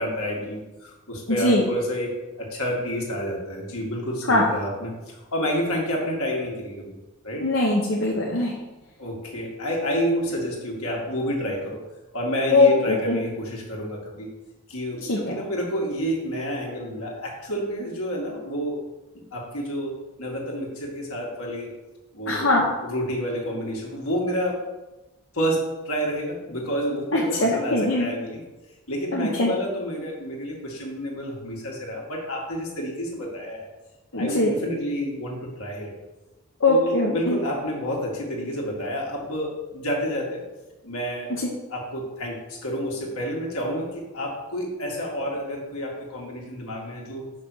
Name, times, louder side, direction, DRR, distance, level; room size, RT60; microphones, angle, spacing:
voice 1, 0.0-6.9 7.2-7.4 9.0-11.8 12.1-14.3 14.7-18.9 19.3-21.8 22.1-22.5 22.8-24.6 25.3-28.4 28.9-33.7 34.2-35.9 36.7-40.4 40.8-41.3 41.7-47.2, equal, 80° left, -2 dB, 2.1 m, -29 dB
voice 2, 1.3-1.6 4.2-4.4 7.4-8.5 12.5-13.2 15.0-15.4 22.3-22.7 27.1-28.1 29.1-29.5 34.1-34.5 36.6-37.4 41.3-41.5, left 2 dB, 65° left, -3 dB, 1.1 m, -21 dB
5.8 x 5.5 x 6.3 m, 1.1 s
head